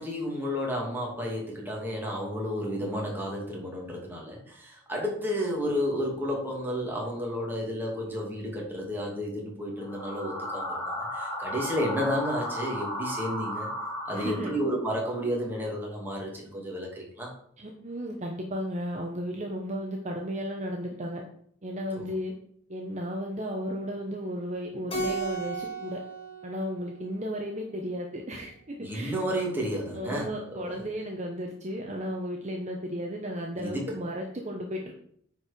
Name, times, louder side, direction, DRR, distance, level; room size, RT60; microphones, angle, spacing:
voice 1, 0.0-10.8 11.1-13.7 14.1-17.3 22.0-22.1 28.8-30.8 33.6-33.8, equal, 10° right, -2 dB, 2.5 m, -32 dB
sound 1, 9.8-14.9, equal, 5° left, 2.8 m, -35 dB
voice 2, 14.1-14.5 17.6-21.2 21.6-22.3 22.7-26.0 26.4-29.1 29.9-34.9, equal, 35° right, 1 dB, 1.0 m, -34 dB
Keyboard (musical), 24.9-27.5, right 4 dB, 30° left, 2.7 m, -35 dB
9.4 x 4.7 x 5.2 m, 0.64 s
head